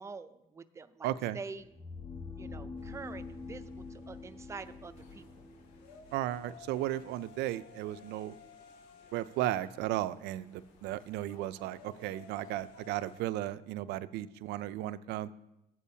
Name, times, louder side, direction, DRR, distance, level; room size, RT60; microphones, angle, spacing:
voice 1, 0.0-1.7 2.4-5.3, right 4 dB, 15° right, 11 dB, 0.4 m, -46 dB
voice 2, 1.0-1.4 6.1-8.4 9.1-15.3, right 14 dB, 85° right, 15 dB, 0.4 m, -35 dB
sound 1, 1.6-7.5, left 4 dB, 30° left, 2.9 m, -46 dB
sound 2, 2.8-13.2, left 5 dB, 85° left, 1.2 m, -57 dB
sound 3, 4.5-13.2, left 3 dB, 50° left, 2.2 m, -62 dB
14.0 x 8.4 x 2.8 m, 0.89 s
cardioid pair, 110°, 17 cm